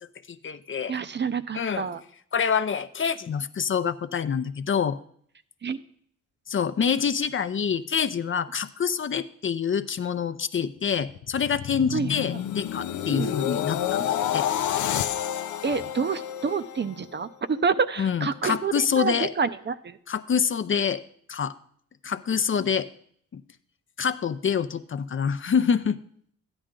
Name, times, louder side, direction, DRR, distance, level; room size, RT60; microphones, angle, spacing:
voice 1, 0.3-0.9 1.5-1.9 2.3-5.0 6.5-14.5 18.0-19.3 20.1-21.0 21.3-21.5 22.0-22.9 23.3-23.4 24.0-26.0, left 7 dB, 45° left, 11 dB, 0.6 m, -26 dB
voice 2, 0.9-2.0 5.6-5.8 11.9-12.1 13.1-13.3 15.6-20.0, right 5 dB, 35° right, 12 dB, 0.6 m, -28 dB
sound 1, 11.1-17.3 17.7-18.0, left 10 dB, 85° left, 0.6 m, -29 dB
12.5 x 9.9 x 3.8 m, 0.62 s
cardioid pair, 60°, 30 cm